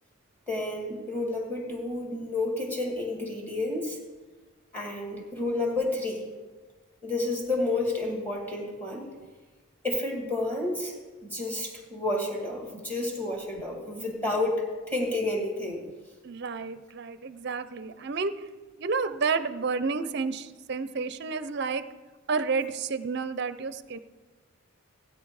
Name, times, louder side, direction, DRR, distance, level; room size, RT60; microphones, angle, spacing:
voice 1, 0.5-4.0 4.7-6.2 7.0-9.1 9.8-10.9 11.2-15.8, left 2 dB, 10° left, 0 dB, 2.2 m, -30 dB
voice 2, 16.2-18.5 18.8-21.9 22.3-24.0, right 4 dB, 50° right, 13 dB, 0.5 m, -30 dB
17.0 x 9.0 x 4.8 m, 1.3 s
head